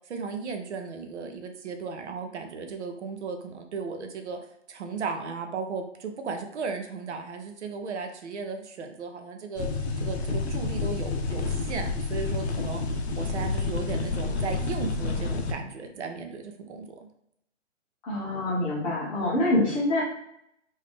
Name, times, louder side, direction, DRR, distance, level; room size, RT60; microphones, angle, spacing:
voice 1, 0.1-4.4 4.7-9.7 10.0-12.8 13.2-17.0, right 5 dB, 65° right, 5 dB, 0.7 m, -35 dB
sound 1, 9.6-15.5, left 3 dB, 60° left, 0.7 m, -29 dB
voice 2, 18.0-20.0, left 1 dB, 15° left, -6 dB, 0.7 m, -25 dB
3.3 x 2.7 x 3.3 m, 0.76 s
hypercardioid pair, 145°, 37 cm